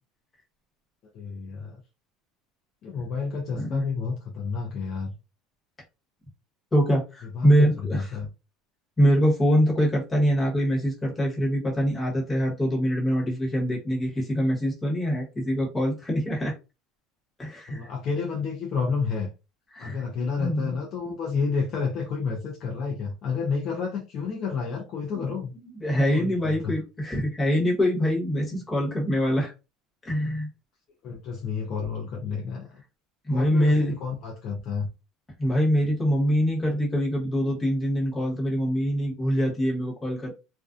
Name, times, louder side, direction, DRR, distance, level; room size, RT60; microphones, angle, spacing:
voice 1, 1.1-1.8 2.8-5.1 7.3-8.3 17.7-19.3 19.8-25.5 26.1-26.8 31.0-32.8 33.3-34.9, left 5 dB, 40° left, 0.5 m, -30 dB
voice 2, 6.7-8.2 9.0-16.5 17.4-17.8 19.7-20.0 20.4-20.7 25.2-25.3 25.8-29.5 30.0-30.5 33.3-33.9 35.4-40.3, equal, 10° left, 1.1 m, -24 dB
2.5 x 2.2 x 2.3 m
cardioid pair, 160°, 0 cm